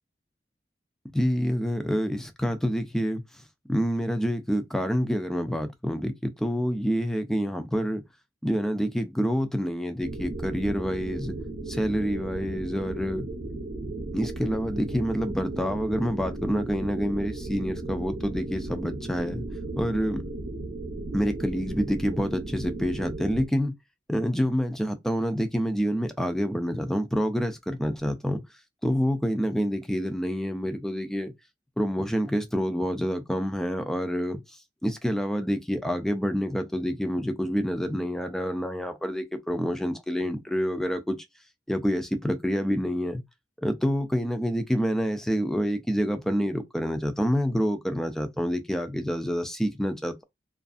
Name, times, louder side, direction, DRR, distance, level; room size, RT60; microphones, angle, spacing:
voice 1, 1.1-3.2 3.7-8.0 8.4-11.3 11.7-13.3 14.1-19.5 19.8-20.2 21.1-23.7 24.1-28.4 28.8-31.3 31.8-34.4 34.8-41.2 41.7-43.2 43.6-50.2, equal, 5° left, 0.3 m, -27 dB
sound 1, 10.0-23.5, right 2 dB, 80° right, 0.7 m, -35 dB
2.4 x 2.4 x 2.3 m
head